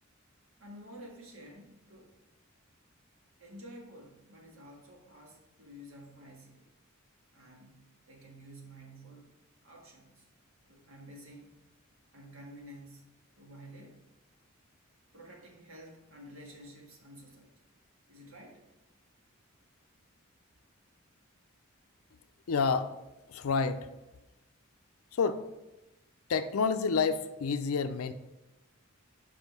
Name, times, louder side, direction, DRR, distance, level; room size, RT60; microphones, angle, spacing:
voice 1, 0.6-2.2 3.4-6.7 7.3-9.3 9.6-10.3 10.7-11.6 12.1-14.0 15.1-17.5 18.1-18.6, equal, 70° right, 0 dB, 1.6 m, -51 dB
voice 2, 22.5-23.0 23.3-23.9 25.1-25.4 26.3-28.1, left 5 dB, 80° left, 10 dB, 0.5 m, -29 dB
5.4 x 4.8 x 6.0 m, 1.0 s
head